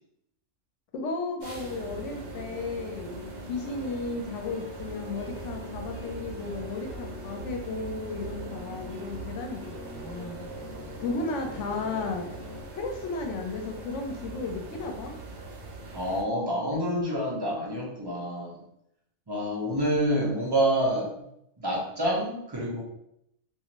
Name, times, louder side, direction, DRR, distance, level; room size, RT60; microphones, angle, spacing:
voice 1, 0.9-10.5 11.0-12.3 12.7-15.2, left 3 dB, 80° left, 3 dB, 0.9 m, -34 dB
sound 1, 1.4-12.6, left 1 dB, 50° left, 0.4 m, -45 dB
sound 2, 1.4-16.2, right 2 dB, 70° right, 0.8 m, -42 dB
voice 2, 15.9-18.6 19.3-21.1 21.6-22.8, equal, 30° right, -4 dB, 0.5 m, -27 dB
2.5 x 2.4 x 2.9 m, 0.77 s
omnidirectional pair, 1.3 m